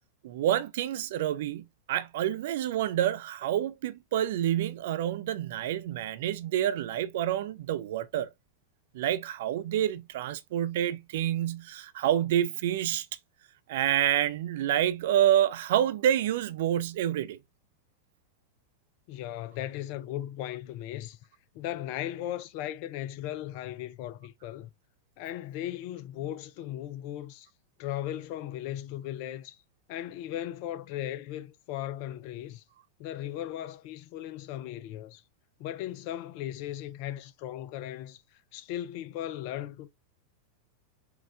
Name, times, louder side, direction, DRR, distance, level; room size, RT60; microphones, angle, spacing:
voice 1, 0.2-8.3 8.9-13.1 13.7-17.4, right 11 dB, 60° right, 0.4 m, -28 dB
voice 2, 19.1-21.2 21.5-24.7 25.2-27.5 27.8-29.6 29.9-32.6 33.0-35.2 35.6-39.9, left 12 dB, 50° left, 0.5 m, -37 dB
4.6 x 2.4 x 3.2 m
figure-of-eight pair, 90°, 0 cm